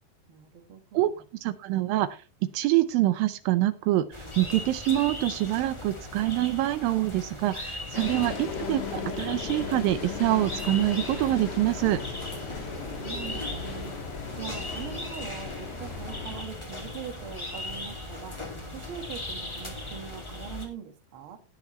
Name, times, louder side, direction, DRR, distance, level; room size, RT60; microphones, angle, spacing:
voice 1, 0.3-1.1 12.4-14.0 14.4-18.4 18.7-21.4, right 8 dB, 55° right, 1.6 m, -42 dB
voice 2, 1.4-2.2 2.5-12.0, right 15 dB, 80° right, 2.3 m, -25 dB
sound 1, 4.1-20.7, left 1 dB, 10° left, 1.6 m, -38 dB
sound 2, 7.9-16.4, left 4 dB, 45° left, 1.3 m, -37 dB
sound 3, 8.4-13.3, left 14 dB, 75° left, 2.2 m, -45 dB
18.5 x 7.0 x 3.0 m
omnidirectional pair, 4.2 m